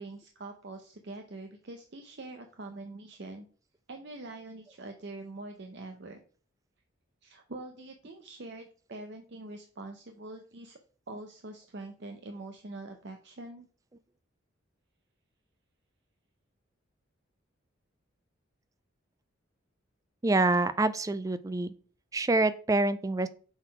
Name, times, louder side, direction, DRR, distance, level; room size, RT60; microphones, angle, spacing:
voice 1, 0.0-3.5 3.9-6.2 7.2-10.8 11.1-13.7, right 2 dB, 55° right, 5 dB, 0.7 m, -44 dB
voice 2, 20.2-21.7 22.1-23.3, right 2 dB, 15° right, 13 dB, 0.3 m, -26 dB
6.3 x 3.9 x 4.7 m, 0.42 s
head